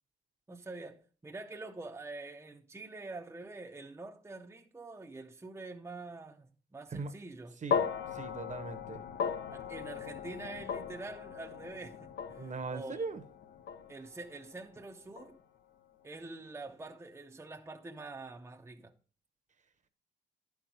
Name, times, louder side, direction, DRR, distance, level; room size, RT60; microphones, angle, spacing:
voice 1, 0.5-7.6 9.5-13.0 13.9-15.4 16.0-18.9, right 3 dB, 15° right, 0.7 m, -46 dB
sound 1, 7.7-16.0, left 7 dB, 70° left, 0.9 m, -38 dB
voice 2, 8.1-9.0 12.4-13.2, right 4 dB, 40° right, 1.0 m, -39 dB
10.5 x 4.6 x 5.2 m
cardioid pair, 85°, 20 cm